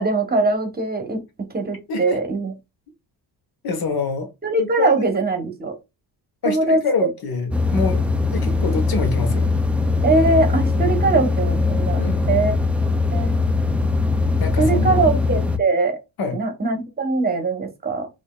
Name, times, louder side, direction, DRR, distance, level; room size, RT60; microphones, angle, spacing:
voice 1, 0.0-2.5 4.4-5.8 6.4-6.8 10.0-12.0 12.3-12.6 13.1-13.4 14.6-16.0 16.3-18.1, right 3 dB, 25° right, 0.9 m, -21 dB
voice 2, 1.9-2.2 3.6-4.3 4.6-5.0 6.4-8.0 8.3-9.5 12.0-12.5 14.4-15.0 16.2-16.4, left 4 dB, 65° left, 1.2 m, -25 dB
sound 1, 7.5-15.6, left 3 dB, 5° right, 0.3 m, -21 dB
4.9 x 2.6 x 2.3 m
cardioid pair, 120°, 38 cm